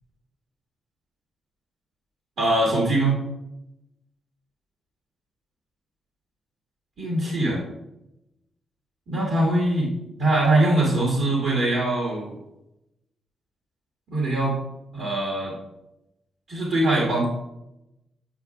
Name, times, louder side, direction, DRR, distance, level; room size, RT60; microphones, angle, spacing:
voice 1, 2.4-3.1 7.0-7.6 9.1-12.3 14.1-14.6 14.9-15.5 16.5-17.3, right 1 dB, 70° right, -4 dB, 1.9 m, -22 dB
8.6 x 5.0 x 2.4 m, 0.87 s
supercardioid pair, 60°, 0 cm